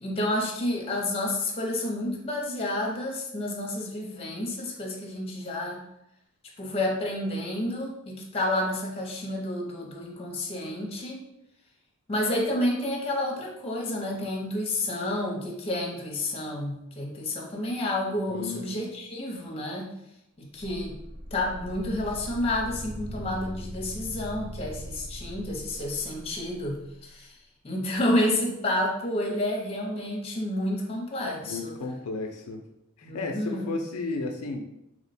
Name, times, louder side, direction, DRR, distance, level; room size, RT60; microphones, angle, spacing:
voice 1, 0.0-5.8 6.6-11.2 12.1-19.9 20.4-21.0 21.3-27.4 27.6-31.8 33.0-33.7, left 1 dB, 25° left, -1 dB, 0.7 m, -30 dB
voice 2, 18.3-18.7 31.4-32.6 33.0-34.6, left 3 dB, 70° left, 3 dB, 0.4 m, -33 dB
sound 1, 20.6-26.8, equal, 25° right, 0.9 m, -40 dB
3.0 x 2.1 x 4.1 m, 0.83 s
head